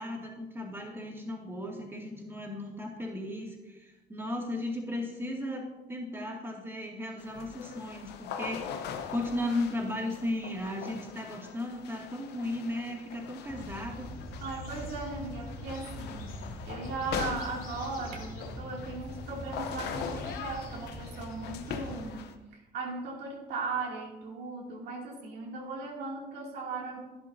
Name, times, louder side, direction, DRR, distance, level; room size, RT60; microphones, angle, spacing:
voice 1, 0.0-8.9 9.1-14.1, left 1 dB, 15° right, -1 dB, 2.2 m, -36 dB
sound 1, 7.2-22.3, left 7 dB, 80° left, 0.9 m, -42 dB
sound 2, 13.4-22.0, left 1 dB, 55° left, 2.9 m, -43 dB
voice 2, 14.4-16.4 16.6-27.0, right 3 dB, 80° right, -2 dB, 2.6 m, -38 dB
11.0 x 11.0 x 2.7 m, 1.1 s
cardioid pair, 110°, 17 cm